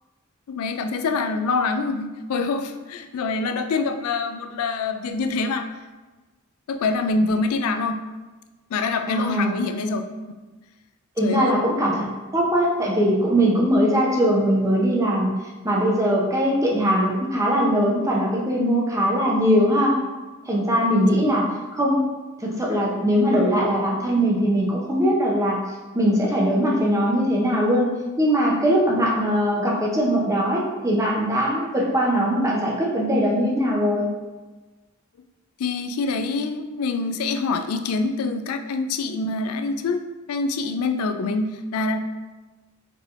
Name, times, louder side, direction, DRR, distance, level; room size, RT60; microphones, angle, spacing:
voice 1, 0.5-5.7 6.7-8.0 8.7-10.1 11.2-11.6 20.8-21.2 35.6-42.0, left 3 dB, 85° left, 8 dB, 0.4 m, -25 dB
voice 2, 9.1-9.6 11.2-12.1 12.3-15.3 15.6-20.0 20.5-21.5 21.7-22.0 22.4-25.6 25.9-27.9 28.2-34.0, equal, 15° right, -3 dB, 0.7 m, -21 dB
4.5 x 3.3 x 2.5 m, 1.2 s
head